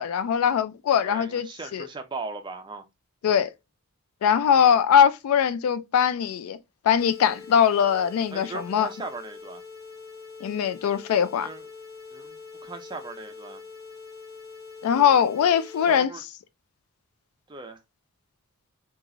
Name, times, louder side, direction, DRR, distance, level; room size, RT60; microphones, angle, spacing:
voice 1, 0.0-1.5 1.7-1.9 3.2-3.5 4.2-6.6 6.8-8.9 10.4-11.5 14.8-16.1, left 8 dB, 85° left, 0.3 m, -21 dB
voice 2, 1.0-2.9 8.3-9.6 11.3-11.7 12.1-13.6 15.8-16.2 17.5-17.8, right 3 dB, 20° right, 0.4 m, -38 dB
sound 1, 7.0-16.0, left 4 dB, 45° left, 0.8 m, -44 dB
2.9 x 2.4 x 2.5 m
head